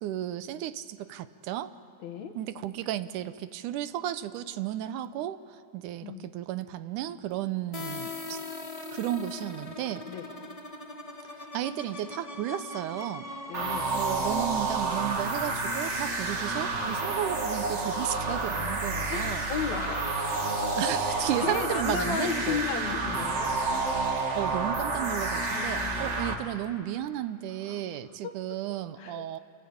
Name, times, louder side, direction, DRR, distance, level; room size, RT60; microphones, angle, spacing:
voice 1, 0.0-1.7 2.4-8.4 8.9-10.1 11.5-13.3 13.9-19.4 20.8-22.6 24.4-29.4, right 12 dB, 80° right, 13 dB, 2.3 m, -33 dB
voice 2, 2.0-2.3 6.0-6.3 10.1-10.3 13.5-13.9 16.5-16.6 19.1-20.3 21.0-23.5 25.5-26.2 27.5-28.1 29.0-29.2, left 7 dB, 65° left, 6 dB, 2.8 m, -35 dB
sound 1, 7.7-17.3, left 2 dB, 25° left, 0.7 m, -42 dB
sound 2, 13.5-26.3, right 3 dB, 30° right, 1.4 m, -30 dB
27.5 x 25.0 x 8.7 m, 2.3 s
omnidirectional pair, 3.6 m